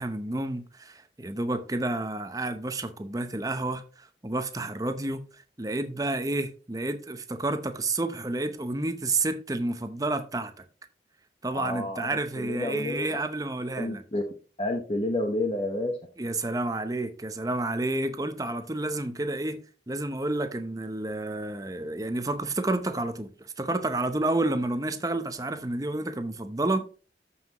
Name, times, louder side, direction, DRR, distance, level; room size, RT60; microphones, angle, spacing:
voice 1, 0.0-5.2 5.6-10.5 11.4-14.0 16.2-19.6 19.9-23.3 23.6-26.9, right 2 dB, 20° right, 0.7 m, -30 dB
voice 2, 11.5-13.1 13.8-14.2 14.6-16.0, left 1 dB, 35° left, 1.0 m, -30 dB
13.5 x 5.7 x 3.0 m
head